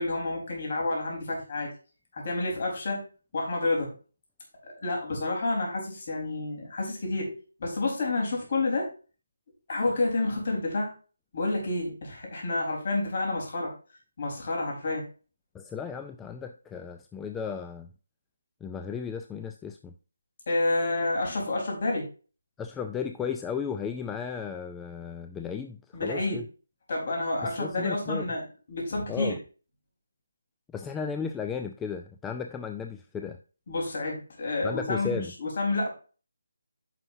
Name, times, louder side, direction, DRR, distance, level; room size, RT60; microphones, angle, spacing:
voice 1, 0.0-1.7 2.1-3.0 3.3-3.9 4.6-8.9 9.7-10.9 11.3-13.7 14.2-15.0 20.5-22.1 25.9-26.4 26.9-28.4 28.7-29.3 33.7-35.9, left 2 dB, 40° left, -1 dB, 4.0 m, -29 dB
voice 2, 15.5-17.9 18.6-19.9 22.6-26.5 27.4-28.3 29.1-29.4 30.7-33.4 34.6-35.3, left 6 dB, 5° left, 6 dB, 0.3 m, -35 dB
9.7 x 5.9 x 2.7 m, 0.36 s
hypercardioid pair, 170°, 0 cm